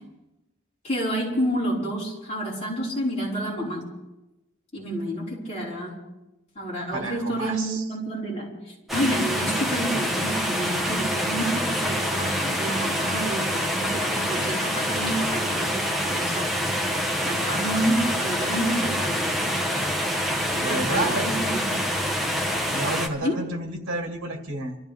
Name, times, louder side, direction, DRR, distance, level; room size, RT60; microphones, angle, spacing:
voice 1, 0.8-3.9 4.7-5.9 6.6-15.9 16.2-16.6 17.2-19.3 20.5-21.8 23.2-23.4, right 1 dB, 30° left, -7 dB, 5.5 m, -29 dB
voice 2, 6.9-7.8 20.5-21.3 22.7-24.8, right 2 dB, 65° right, 2 dB, 2.1 m, -30 dB
sound 1, 8.9-23.1, equal, ahead, 1.2 m, -26 dB
26.0 x 14.5 x 3.7 m, 1.0 s
head